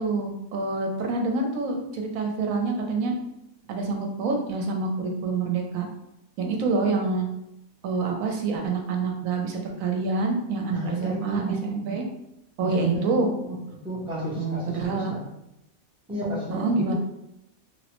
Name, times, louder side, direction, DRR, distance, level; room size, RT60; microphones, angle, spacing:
voice 1, 0.0-3.1 3.7-5.9 6.4-7.3 7.8-12.0 12.6-13.6 14.4-15.1 16.5-17.0, right 3 dB, 75° right, 2 dB, 1.0 m, -27 dB
voice 2, 10.7-11.6 12.6-13.3 13.7-15.3 16.1-16.9, right 1 dB, 5° right, -7 dB, 0.5 m, -31 dB
2.9 x 2.0 x 2.9 m, 0.85 s
omnidirectional pair, 1.5 m